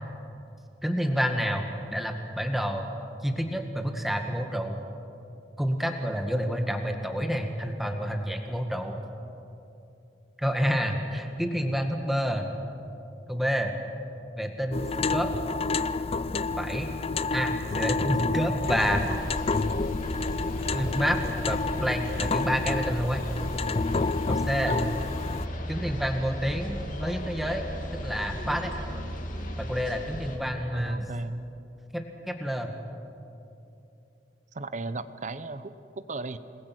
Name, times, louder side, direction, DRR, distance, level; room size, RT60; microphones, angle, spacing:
voice 1, 0.8-2.9 3.2-4.8 5.6-9.0 10.4-12.5 13.3-13.8 14.4-15.3 16.6-16.9 17.3-19.2 20.7-21.2 21.4-23.2 24.3-24.7 25.7-27.6 27.9-28.7 29.6-31.1 31.9-32.7, equal, ahead, 4 dB, 1.9 m, -29 dB
sound 1, 14.7-25.5, left 3 dB, 35° left, 0.5 m, -29 dB
sound 2, 18.6-30.4, equal, 50° left, 2.5 m, -36 dB
voice 2, 24.7-25.0 30.7-31.4 34.5-36.4, right 2 dB, 45° right, 13 dB, 0.9 m, -35 dB
28.0 x 21.0 x 6.1 m, 2.8 s
head